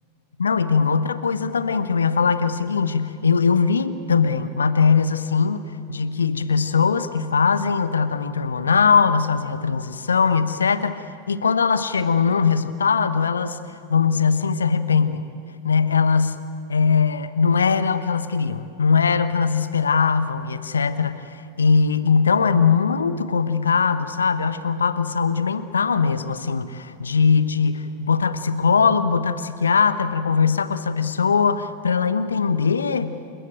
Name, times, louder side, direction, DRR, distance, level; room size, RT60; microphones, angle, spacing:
voice 1, 0.4-5.6 5.9-13.6 13.9-15.2 15.6-16.4 16.7-33.2, left 5 dB, 70° left, 13 dB, 1.0 m, -20 dB
28.5 x 14.5 x 9.0 m, 2.5 s
figure-of-eight pair, 90°, 0 cm